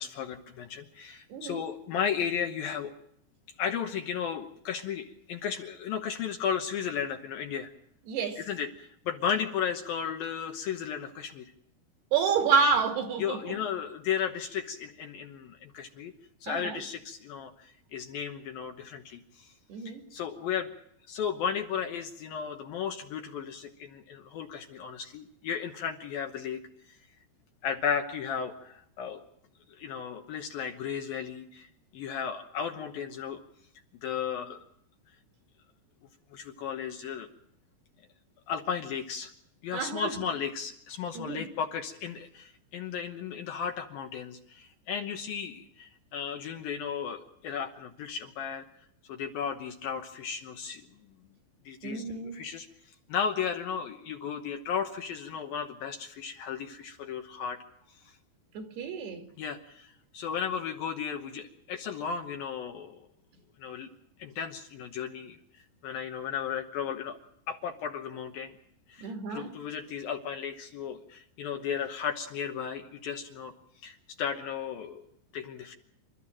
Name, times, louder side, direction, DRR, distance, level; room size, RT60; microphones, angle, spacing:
voice 1, 0.0-2.9 3.6-7.7 8.4-11.4 13.2-16.1 16.4-19.5 19.9-20.7 21.1-26.6 27.6-29.2 29.7-33.4 34.0-34.6 36.3-37.3 38.5-39.3 39.6-48.7 49.1-50.8 51.7-52.7 53.1-57.6 58.0-58.1 59.4-63.1 63.6-63.9 64.2-65.4 65.8-67.2 67.5-68.5 68.9-73.5 73.8-75.0 75.3-75.8, left 7 dB, 70° left, 2.5 m, -34 dB
voice 2, 1.3-1.6 8.1-8.4 12.1-13.5 16.5-16.8 19.7-20.0 39.7-40.1 41.1-41.4 51.8-52.4 58.6-59.3 69.0-69.5, right 5 dB, 65° right, 4.1 m, -29 dB
28.0 x 13.5 x 8.8 m
omnidirectional pair, 5.1 m